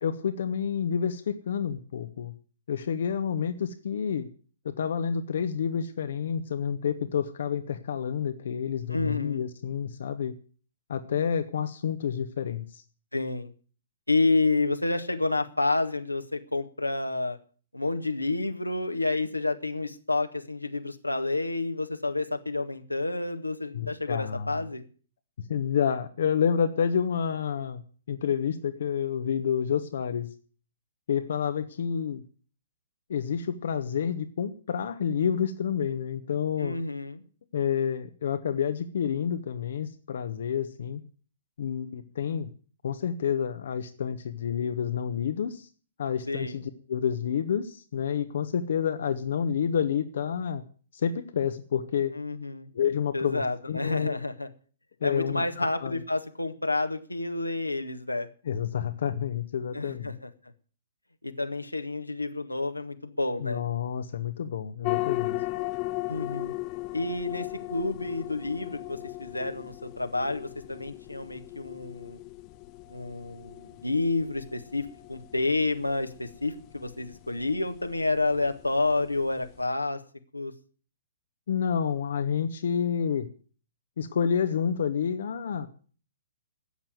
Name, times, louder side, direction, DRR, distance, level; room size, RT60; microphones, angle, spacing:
voice 1, 0.0-2.3 2.7-4.3 4.6-10.3 10.9-12.8 23.7-24.6 25.5-27.8 28.1-30.3 31.1-32.2 33.1-36.8 37.5-41.0 41.6-42.5 42.8-45.7 46.0-50.6 50.9-52.1 52.7-54.2 55.0-56.0 58.5-60.2 63.4-65.4 81.5-83.3 84.0-85.7, left 7 dB, 55° left, 9 dB, 1.2 m, -29 dB
voice 2, 8.9-9.4 13.1-13.5 14.1-17.4 17.7-24.8 36.6-37.2 46.3-46.6 52.1-52.7 53.1-54.5 55.0-58.3 59.7-60.3 61.2-63.6 66.1-66.5 66.9-72.2 72.9-80.0 80.3-80.5, left 2 dB, 85° left, 7 dB, 1.8 m, -29 dB
sound 1, 64.8-79.6, left 20 dB, 30° left, 0.8 m, -37 dB
13.5 x 8.8 x 9.4 m, 0.41 s
figure-of-eight pair, 120°, 0 cm